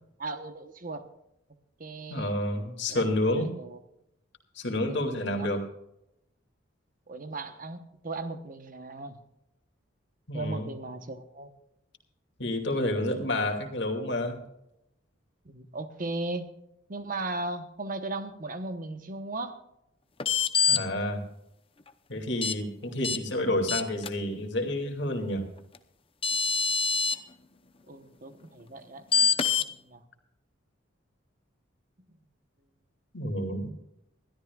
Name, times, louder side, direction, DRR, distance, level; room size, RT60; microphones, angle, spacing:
voice 1, 0.2-1.0 1.8-2.4 2.9-3.0 3.4-3.8 4.9-5.5 7.1-9.2 10.3-11.5 15.4-16.5 16.9-19.6 27.9-29.1 29.6-30.0, right 2 dB, 45° right, 9 dB, 1.0 m, -37 dB
voice 2, 2.1-3.5 4.6-5.6 10.3-10.7 12.4-14.4 20.7-21.3 22.1-25.5 33.1-33.7, left 1 dB, 60° left, 4 dB, 2.5 m, -29 dB
Bip of my dishwasher, 20.2-20.8 22.4-22.5 23.0-23.2 23.7-24.1 25.7-25.8 26.2-27.2 29.1-29.7, left 6 dB, 30° left, 0.7 m, -24 dB
21.5 x 13.0 x 2.4 m, 0.83 s
head